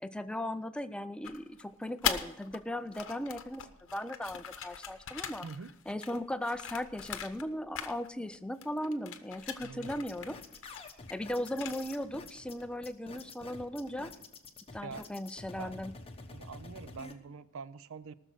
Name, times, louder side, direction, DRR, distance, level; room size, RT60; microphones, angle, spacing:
voice 1, 0.0-3.7 3.9-5.5 5.9-10.4 11.1-14.1 14.7-15.9, left 1 dB, 5° left, 11 dB, 0.4 m, -37 dB
sound 1, 1.2-2.6 2.9-7.5 7.7-8.4 8.6-12.0, left 8 dB, 65° left, 0.9 m, -40 dB
voice 2, 5.4-5.7 9.6-10.0 14.8-15.0 15.6-15.8 16.3-18.1, right 5 dB, 65° right, 17 dB, 0.5 m, -45 dB
sound 2, 9.8-17.1, left 3 dB, 25° left, 1.1 m, -48 dB
18.5 x 6.6 x 6.3 m, 0.84 s
head